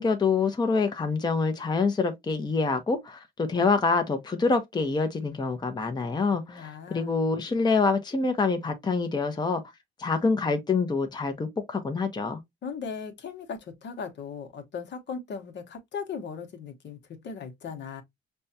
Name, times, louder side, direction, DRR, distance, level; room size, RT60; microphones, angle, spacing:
voice 1, 0.0-9.6 10.0-12.4, left 4 dB, 20° left, 0.7 m, -26 dB
voice 2, 6.3-7.2 12.6-18.0, left 6 dB, 60° left, 1.0 m, -38 dB
5.3 x 2.3 x 2.6 m
cardioid pair, 90°, 20 cm